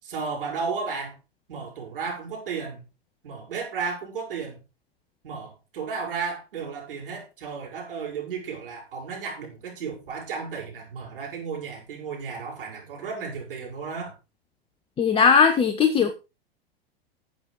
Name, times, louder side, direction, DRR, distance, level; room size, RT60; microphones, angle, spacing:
voice 1, 0.0-1.2 1.5-2.8 3.2-4.6 5.2-14.1, right 5 dB, 60° right, 6.5 m, -33 dB
voice 2, 15.0-16.1, left 6 dB, 15° left, 1.0 m, -18 dB
12.5 x 7.8 x 4.6 m
figure-of-eight pair, 100°, 30 cm